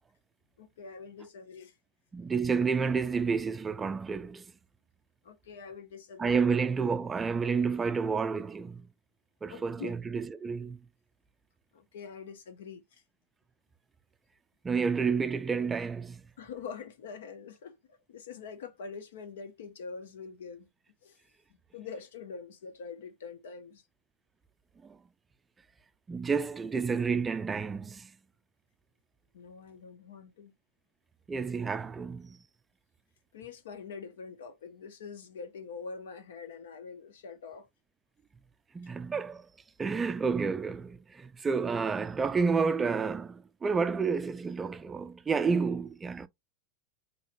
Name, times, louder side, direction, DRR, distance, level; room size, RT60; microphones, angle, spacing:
voice 1, 0.6-1.8 5.2-6.5 9.5-9.9 11.7-13.0 16.4-20.7 21.0-21.2 21.7-23.8 29.3-30.5 33.3-37.7, left 5 dB, 75° left, 0.7 m, -44 dB
voice 2, 2.1-4.4 6.2-8.9 9.4-10.8 14.6-16.2 24.8-25.0 26.1-28.1 31.3-32.4 38.7-39.5 39.8-46.3, right 5 dB, 20° right, 0.3 m, -30 dB
3.0 x 2.9 x 2.5 m
hypercardioid pair, 95°, 0 cm